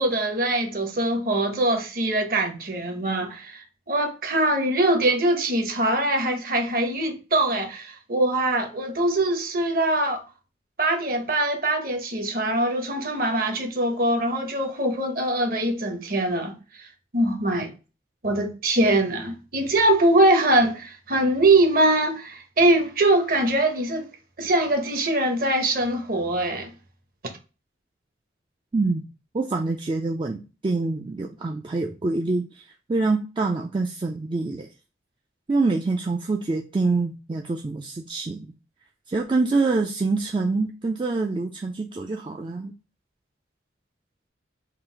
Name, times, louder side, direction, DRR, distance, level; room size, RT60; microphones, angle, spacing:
voice 1, 0.0-10.2 10.8-16.9 17.1-17.7 18.2-24.1 24.4-26.7, right 1 dB, 50° right, 0.9 m, -23 dB
voice 2, 28.7-29.1 29.3-34.7 35.5-38.5 39.1-42.7, right 3 dB, 25° right, 0.3 m, -26 dB
3.8 x 2.4 x 4.5 m
head